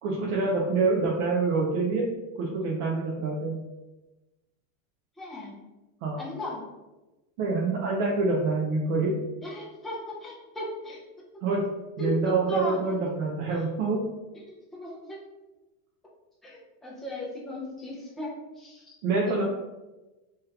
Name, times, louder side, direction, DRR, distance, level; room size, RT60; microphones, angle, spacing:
voice 1, 0.0-2.1 2.4-3.6 6.0-6.2 7.4-9.1 11.4-11.7 12.0-14.1 19.0-19.4, right 3 dB, 60° right, -3 dB, 0.8 m, -26 dB
voice 2, 5.2-5.5 6.2-6.7 9.4-11.0 11.3-11.4 12.0-13.0 13.5-13.6 14.4-15.2 16.4-19.4, left 1 dB, ahead, -5 dB, 0.4 m, -37 dB
3.2 x 2.4 x 3.2 m, 1.1 s
supercardioid pair, 135°, 45 cm